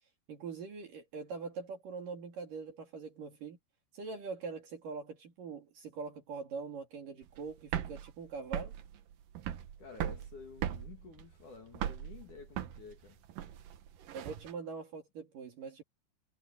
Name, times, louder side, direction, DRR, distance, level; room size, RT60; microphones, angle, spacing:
voice 1, 0.3-3.6 3.9-8.7 14.1-15.8, right 4 dB, 50° right, 3.5 m, -43 dB
sound 1, 7.2-14.5, right 11 dB, 70° right, 2.1 m, -39 dB
voice 2, 9.8-13.2, left 5 dB, 50° left, 3.1 m, -51 dB
omnidirectional pair, 5.7 m